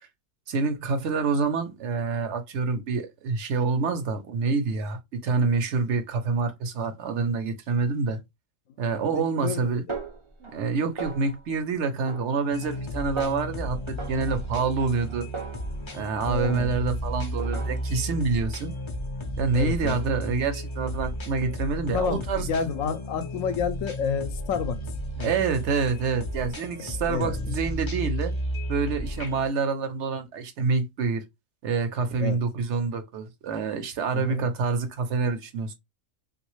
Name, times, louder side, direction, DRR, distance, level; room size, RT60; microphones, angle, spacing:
voice 1, 0.5-8.2 8.8-9.8 10.4-15.3 15.9-18.7 19.4-22.5 25.2-28.3 28.7-31.2 31.6-35.7, right 4 dB, 65° right, 0.9 m, -27 dB
voice 2, 9.1-9.8 16.2-16.7 19.5-20.0 21.9-24.8 25.2-25.3 27.1-27.5 32.2-32.4 34.1-34.5, left 6 dB, 85° left, 1.0 m, -29 dB
Snare drum, 9.9-10.7 11.0-11.6 12.1-12.9 13.2-13.6 14.0-16.1 16.4-17.0 17.4-18.1, right 4 dB, 30° right, 0.6 m, -39 dB
sound 1, 12.5-29.5, equal, 40° left, 0.4 m, -33 dB
3.0 x 2.5 x 3.0 m
omnidirectional pair, 1.4 m